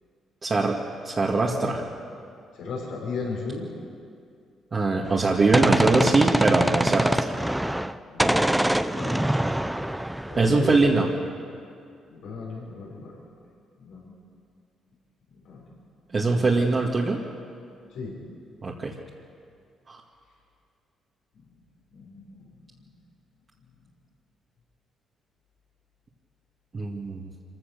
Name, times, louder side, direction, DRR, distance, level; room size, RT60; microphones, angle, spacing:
voice 1, 0.4-0.8 1.0-1.9 4.7-7.3 10.4-11.1 16.1-17.2 18.6-18.9 19.9-20.0 26.7-27.3, right 3 dB, 35° right, -4 dB, 2.1 m, -22 dB
voice 2, 2.6-3.6 8.1-9.6 9.8-10.0 10.3-11.0 12.1-13.1 13.8-14.1 15.5-15.6 16.2-16.6 17.9-18.1 21.9-22.4, left 4 dB, 80° left, -1 dB, 5.7 m, -36 dB
Gunshot gunfire, 5.1-10.9, right 1 dB, 5° right, 0.7 m, -24 dB
25.5 x 16.0 x 6.9 m, 2.3 s
cardioid pair, 90°, 0 cm